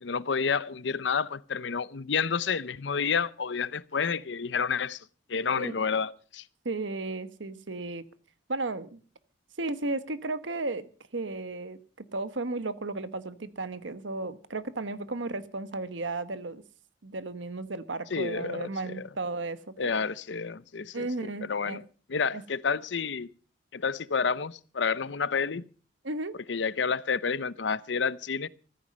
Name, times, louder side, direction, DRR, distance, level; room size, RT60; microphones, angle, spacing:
voice 1, 0.0-5.0 5.3-6.4 18.1-19.1 19.8-21.8 22.1-23.3 23.7-25.7 26.5-28.5, left 5 dB, 65° left, 0.7 m, -30 dB
voice 2, 6.6-8.0 8.5-9.0 9.6-11.8 12.1-16.6 17.0-19.9 20.9-21.8 22.3-22.4 26.0-26.4, right 2 dB, 75° right, 1.2 m, -34 dB
14.5 x 14.5 x 5.4 m
head